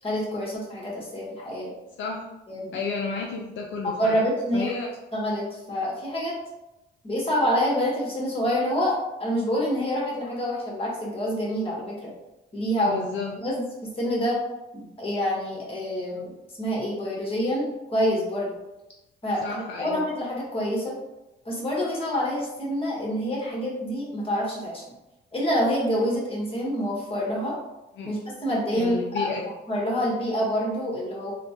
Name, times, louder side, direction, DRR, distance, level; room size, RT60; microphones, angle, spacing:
voice 1, 0.0-1.7 2.5-2.8 3.8-4.7 5.1-6.3 7.0-12.1 12.5-13.1 13.4-14.4 14.7-16.3 16.6-18.5 19.2-21.0 21.4-24.8 25.3-27.6 28.1-29.3 29.7-31.3, equal, 30° left, -4 dB, 1.3 m, -27 dB
voice 2, 2.7-4.2 4.5-4.9 12.9-13.3 19.4-20.0 28.0-28.1 28.7-29.4, left 4 dB, 70° left, 0 dB, 0.4 m, -31 dB
3.2 x 2.1 x 2.8 m, 0.98 s
cardioid pair, 90°, 20 cm